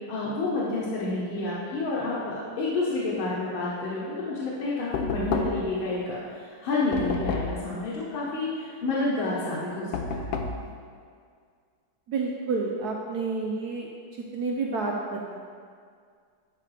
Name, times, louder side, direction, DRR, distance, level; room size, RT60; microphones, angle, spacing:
voice 1, 0.1-10.4, left 2 dB, 70° left, -8 dB, 1.9 m, -29 dB
Knock, 4.9-5.8 6.9-7.7 9.9-10.7, left 4 dB, 90° left, 1.6 m, -30 dB
voice 2, 12.1-13.9 14.3-15.4, right 3 dB, 80° right, -1 dB, 0.8 m, -29 dB
9.7 x 5.7 x 3.3 m, 2.1 s
omnidirectional pair, 2.4 m